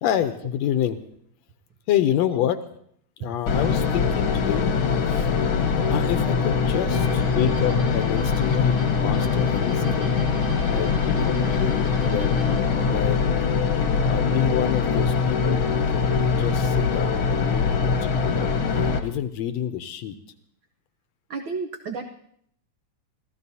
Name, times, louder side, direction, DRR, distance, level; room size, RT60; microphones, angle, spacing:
voice 1, 0.0-1.0 1.9-2.6 3.2-4.8 5.1-5.3 5.9-10.2 10.7-12.4 12.8-13.2 14.0-18.5 19.0-20.2, left 10 dB, 75° left, 10 dB, 1.8 m, -28 dB
sound 1, 3.5-19.0, left 5 dB, 55° left, 1.5 m, -22 dB
sound 2, 6.9-12.8, right 3 dB, 55° right, 2.9 m, -40 dB
voice 2, 21.3-22.0, right 5 dB, 85° right, 4 dB, 1.0 m, -32 dB
26.5 x 14.5 x 2.8 m, 0.67 s
omnidirectional pair, 3.4 m